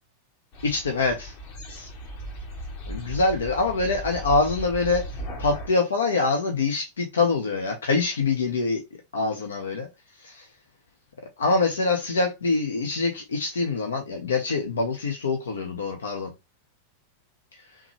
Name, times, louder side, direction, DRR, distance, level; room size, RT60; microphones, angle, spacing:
sound 1, 0.5-5.7, right 1 dB, 45° left, 1.2 m, -36 dB
voice 1, 0.6-1.3 1.7-1.9 2.9-5.0 5.4-8.8 9.1-9.9 10.2-10.5 11.4-16.3, left 3 dB, 70° left, 0.7 m, -25 dB
3.6 x 2.9 x 3.1 m
figure-of-eight pair, 90°, 0 cm